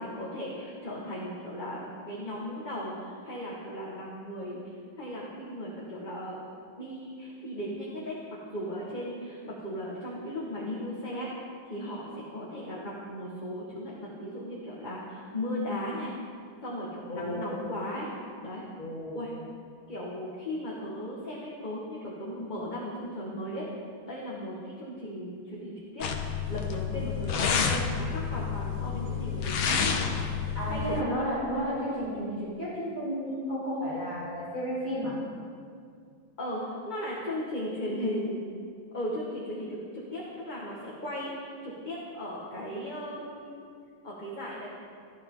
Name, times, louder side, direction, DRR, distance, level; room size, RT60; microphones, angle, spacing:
voice 1, 0.0-6.4 6.8-11.3 11.7-16.1 16.6-18.1 18.4-18.6 19.1-19.3 19.9-23.7 24.1-29.9 30.7-31.0 36.4-38.4 38.9-43.6 44.0-44.7, equal, 25° left, -6 dB, 1.9 m, -36 dB
voice 2, 17.1-17.6 18.8-19.2 30.5-35.1, equal, 20° right, -12 dB, 4.6 m, -32 dB
sound 1, 26.0-31.0, left 6 dB, 80° left, 1.9 m, -29 dB
18.5 x 13.5 x 4.0 m, 2.2 s
omnidirectional pair, 2.2 m